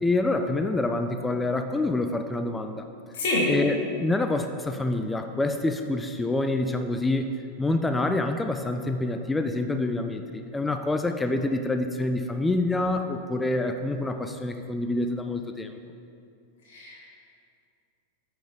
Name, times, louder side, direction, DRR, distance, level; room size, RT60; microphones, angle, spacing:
voice 1, 0.0-2.9 3.5-7.3 7.6-15.8, left 2 dB, 10° left, 6 dB, 0.4 m, -27 dB
voice 2, 16.7-17.0, left 2 dB, 55° left, -5 dB, 2.0 m, -27 dB
9.9 x 5.8 x 3.8 m, 2.5 s
figure-of-eight pair, 90°, 0 cm